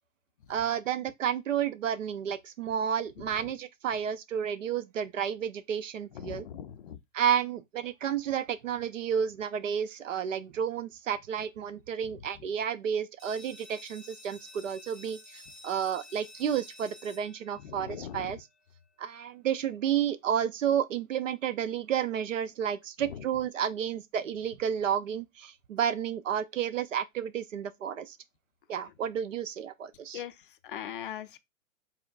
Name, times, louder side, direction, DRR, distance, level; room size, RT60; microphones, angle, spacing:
voice 1, 0.5-6.5 7.1-18.4 19.0-28.2 28.7-30.2, right 8 dB, 65° right, 0.6 m, -31 dB
voice 2, 6.1-7.0 17.6-18.4 23.0-23.2 30.1-30.3 30.6-31.4, left 9 dB, 40° left, 0.4 m, -40 dB
sound 1, 13.2-18.6, left 1 dB, 85° right, 1.3 m, -51 dB
4.3 x 3.6 x 2.4 m
figure-of-eight pair, 120°, 41 cm